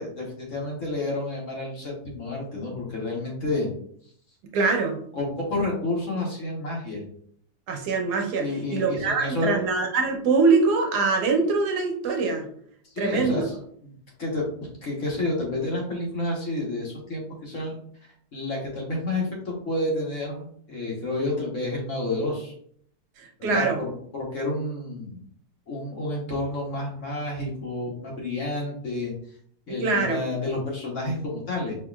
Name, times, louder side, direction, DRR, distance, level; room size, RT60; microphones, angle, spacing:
voice 1, 0.0-3.7 5.1-7.0 8.4-9.6 12.9-13.6 13.8-13.9 14.2-14.5 14.8-17.7 18.3-22.5 23.4-25.2 25.7-29.1 29.7-31.8, left 2 dB, 50° left, -2 dB, 1.3 m, -30 dB
voice 2, 4.5-5.0 7.7-8.4 8.7-12.5 13.0-13.4 23.2-23.8 29.7-30.2, right 4 dB, 75° right, 2 dB, 1.3 m, -23 dB
5.3 x 2.9 x 2.3 m, 0.63 s
omnidirectional pair, 1.8 m